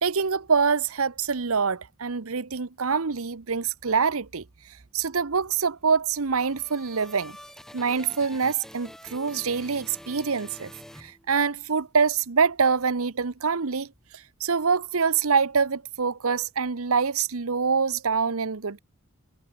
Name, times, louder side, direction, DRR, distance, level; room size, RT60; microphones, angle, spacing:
voice 1, 0.0-4.4 4.9-7.4 7.7-10.7 11.0-13.9 14.4-18.8, right 5 dB, 75° right, 0.9 m, -25 dB
sound 1, 6.1-11.7, equal, ahead, 2.6 m, -47 dB
head